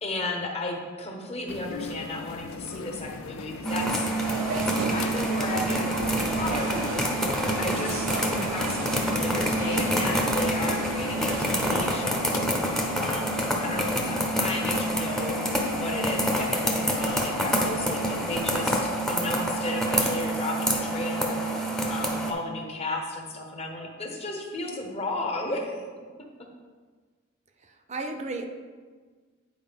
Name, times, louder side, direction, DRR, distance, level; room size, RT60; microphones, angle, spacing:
voice 1, 0.0-4.1 4.5-12.4 12.9-15.4 15.7-26.0, left 2 dB, 35° left, 1 dB, 1.0 m, -34 dB
sound 1, 1.5-18.8, left 5 dB, 85° left, 0.4 m, -39 dB
sound 2, 3.6-22.3, right 1 dB, ahead, 0.7 m, -27 dB
sound 3, 4.2-11.9, right 3 dB, 75° right, 0.6 m, -35 dB
voice 2, 27.6-28.5, right 2 dB, 35° right, 5 dB, 0.5 m, -34 dB
9.2 x 4.7 x 3.6 m, 1.5 s
head